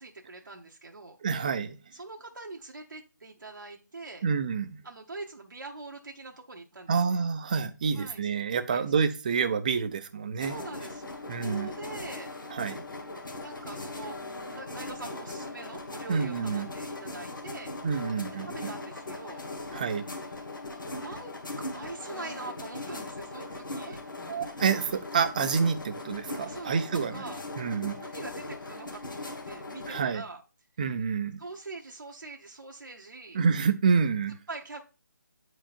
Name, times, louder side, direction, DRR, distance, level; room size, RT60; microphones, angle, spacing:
voice 1, 0.0-1.2 1.9-4.2 4.8-7.2 7.9-8.3 8.7-8.9 10.4-11.1 11.4-12.3 13.4-14.2 14.5-17.7 18.4-19.8 20.9-24.0 26.4-27.4 28.0-30.4 31.4-33.4 34.5-34.8, right 3 dB, 80° right, 1.0 m, -43 dB
voice 2, 1.2-1.8 4.2-4.8 6.9-10.6 11.3-11.7 12.5-12.8 16.1-16.7 17.8-18.7 19.7-20.1 24.3-27.2 27.6-28.0 29.9-30.2 30.8-31.4 33.3-34.4, right 5 dB, 25° right, 0.4 m, -28 dB
sound 1, 10.4-30.0, left 2 dB, 85° left, 1.7 m, -39 dB
8.8 x 4.6 x 2.4 m
figure-of-eight pair, 165°, 10 cm